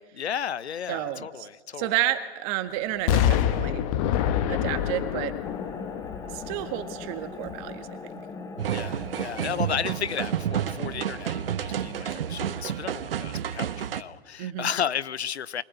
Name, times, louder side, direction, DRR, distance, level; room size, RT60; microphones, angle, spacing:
voice 1, 0.2-1.9 8.7-15.6, left 8 dB, 75° left, 0.9 m, -33 dB
voice 2, 0.9-1.5 1.8-3.8 4.5-5.3 6.3-8.0 14.4-14.7, right 13 dB, 30° right, 1.9 m, -30 dB
Explosion, 3.1-7.0 7.5-7.6, left 10 dB, 30° left, 1.3 m, -26 dB
sound 1, 5.4-12.6, left 4 dB, 10° left, 1.2 m, -41 dB
sound 2, 8.6-14.0, right 10 dB, 60° right, 1.2 m, -30 dB
24.0 x 19.0 x 9.3 m
hypercardioid pair, 130°, 33 cm